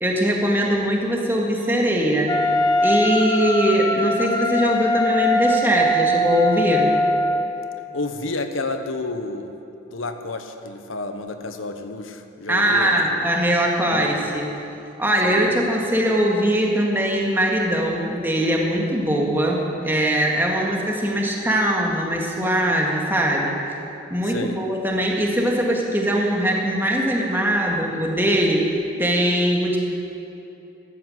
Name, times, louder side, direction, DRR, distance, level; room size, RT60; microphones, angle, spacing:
voice 1, 0.0-2.4 2.8-6.9 12.5-14.5 15.0-23.6 24.1-29.8, equal, 10° right, -1 dB, 1.8 m, -21 dB
Wind instrument woodwind instrument, 2.3-7.5, left 1 dB, 20° left, 0.8 m, -21 dB
voice 2, 7.9-9.6 9.9-13.0 15.2-15.5 24.2-24.6, left 2 dB, 85° left, 7 dB, 1.0 m, -30 dB
14.0 x 12.5 x 7.9 m, 2.8 s
head